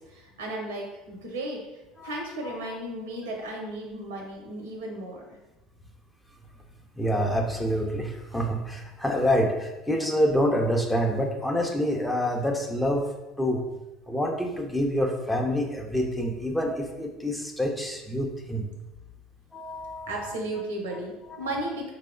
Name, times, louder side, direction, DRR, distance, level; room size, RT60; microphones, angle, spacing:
voice 1, 0.0-1.6 2.0-5.2 20.1-21.9, right 1 dB, 80° right, 0 dB, 0.6 m, -34 dB
voice 2, 2.0-2.8 7.0-13.1 13.4-13.6 14.1-18.7 19.5-20.6 21.3-21.4, equal, 5° left, 1 dB, 0.5 m, -27 dB
3.0 x 2.0 x 3.5 m, 1.0 s
hypercardioid pair, 75°, 0 cm